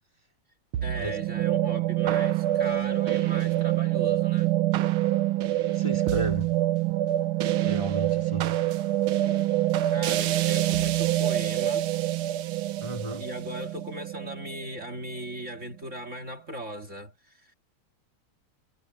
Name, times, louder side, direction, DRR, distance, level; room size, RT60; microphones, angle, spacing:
sound 1, 0.7-15.2, right 14 dB, 85° right, 1.8 m, -26 dB
voice 1, 0.8-4.5 8.7-8.8 9.8-11.9 13.2-17.5, equal, 35° right, 2.8 m, -38 dB
voice 2, 5.6-6.6 7.6-8.6 12.8-13.3, right 1 dB, 15° left, 2.8 m, -34 dB
omnidirectional pair, 2.3 m